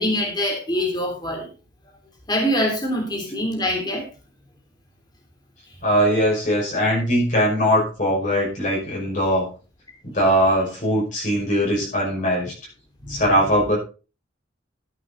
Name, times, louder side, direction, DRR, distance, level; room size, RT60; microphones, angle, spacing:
voice 1, 0.0-1.5 2.3-4.0 13.0-13.2, equal, 20° left, 1 dB, 3.4 m, -24 dB
voice 2, 5.8-9.5 10.0-12.5 13.1-13.8, equal, 45° left, -3 dB, 5.7 m, -20 dB
13.5 x 8.5 x 4.1 m, 0.34 s
head